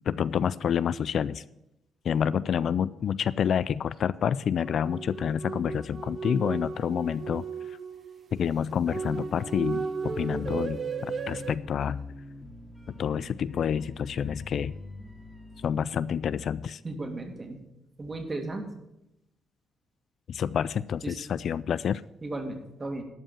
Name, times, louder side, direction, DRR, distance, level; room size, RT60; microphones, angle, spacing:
voice 1, 0.1-1.4 2.0-7.4 8.3-12.0 13.0-14.7 15.6-16.8 20.3-22.0, left 8 dB, 60° left, 17 dB, 0.3 m, -28 dB
sound 1, 4.6-11.6, right 5 dB, 45° right, 0.9 m, -35 dB
sound 2, 9.0-15.9, left 1 dB, 5° left, 2.1 m, -45 dB
voice 2, 16.8-17.6 18.0-18.7 21.0-21.2 22.2-23.0, right 2 dB, 30° right, 4 dB, 2.2 m, -35 dB
12.0 x 5.5 x 8.6 m, 0.87 s
cardioid pair, 90°, 0 cm